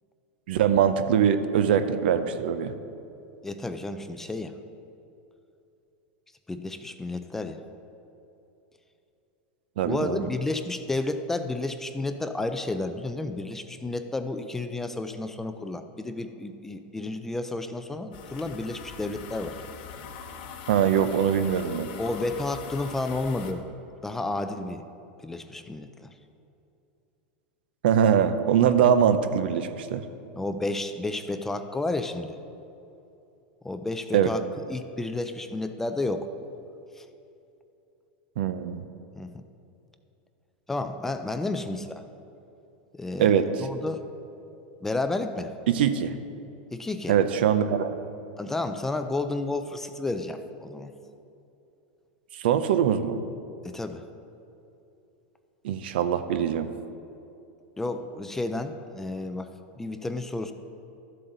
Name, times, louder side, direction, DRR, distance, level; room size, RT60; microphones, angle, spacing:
voice 1, 0.5-2.8 9.8-10.2 20.7-21.9 27.8-30.0 34.1-34.3 38.4-38.8 43.2-43.5 45.7-46.2 47.1-47.9 52.4-53.2 55.6-56.7, right 8 dB, 75° right, 10 dB, 0.7 m, -22 dB
voice 2, 3.4-4.5 6.5-7.6 9.8-19.6 22.0-23.7 24.0-24.8 25.2-26.1 30.4-32.4 33.6-34.4 34.7-36.3 37.0-37.1 39.2-39.3 40.7-42.0 43.0-43.3 43.6-44.0 44.8-45.5 46.7-47.2 48.4-50.9 53.6-54.0 57.8-59.5 59.8-60.5, left 2 dB, 5° left, 8 dB, 0.4 m, -31 dB
sound 1, 18.1-23.5, left 7 dB, 60° left, 1.0 m, -42 dB
13.0 x 7.8 x 3.9 m, 2.8 s
supercardioid pair, 155°, 6 cm